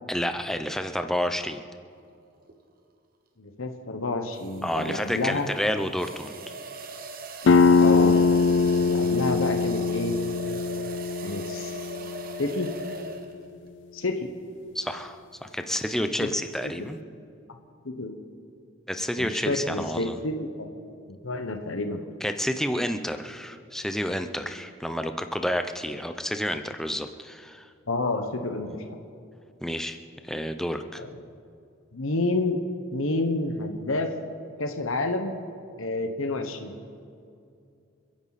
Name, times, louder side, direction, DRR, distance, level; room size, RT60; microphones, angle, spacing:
voice 1, 0.1-1.6 4.6-6.4 14.7-17.0 18.9-20.2 22.2-27.7 29.6-30.0 30.2-31.0, equal, ahead, 7 dB, 0.6 m, -30 dB
sound 1, 2.4-2.7 4.4-13.6, right 2 dB, 45° right, 1.1 m, -40 dB
voice 2, 3.4-5.5 7.8-8.2 8.8-10.2 11.2-11.9 12.4-12.7 13.9-14.3 16.2-16.3 17.8-18.1 19.2-20.7 21.2-22.0 27.9-28.8 30.9-31.1 31.9-32.6 32.9-34.1 34.6-35.5 35.8-36.7, left 2 dB, 85° left, 5 dB, 1.2 m, -29 dB
sound 2, 7.5-12.9, left 4 dB, 60° left, 0.4 m, -22 dB
29.5 x 10.5 x 4.2 m, 2.4 s
head